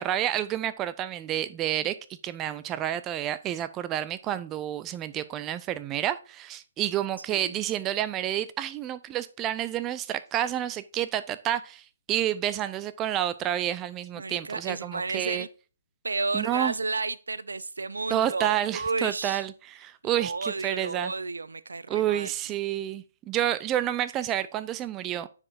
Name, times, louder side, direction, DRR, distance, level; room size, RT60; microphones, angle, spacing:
voice 1, 0.0-1.9 2.2-15.5 16.3-16.7 18.1-21.1 21.9-25.3, right 12 dB, 20° right, 0.4 m, -29 dB
voice 2, 14.2-15.5 16.0-19.4 20.0-22.3, right 3 dB, 70° right, 0.5 m, -32 dB
9.5 x 4.9 x 2.6 m
figure-of-eight pair, 130°, 0 cm